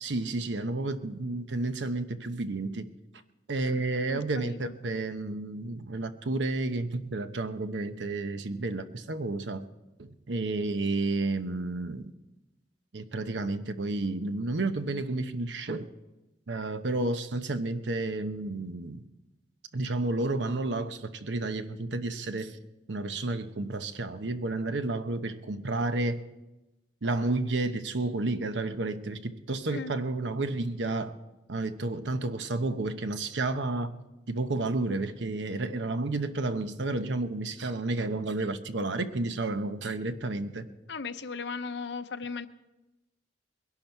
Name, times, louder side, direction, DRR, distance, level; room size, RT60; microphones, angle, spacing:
voice 1, 0.0-2.9 3.5-9.7 10.0-12.1 12.9-15.9 16.5-19.0 19.7-22.6 22.9-26.2 27.0-31.1 31.5-33.9 34.3-40.7, right 2 dB, 90° right, 10 dB, 0.9 m, -31 dB
voice 2, 4.1-4.7 29.7-29.9 40.9-42.5, left 4 dB, 75° left, 11 dB, 0.7 m, -37 dB
21.5 x 11.5 x 4.5 m, 1.0 s
head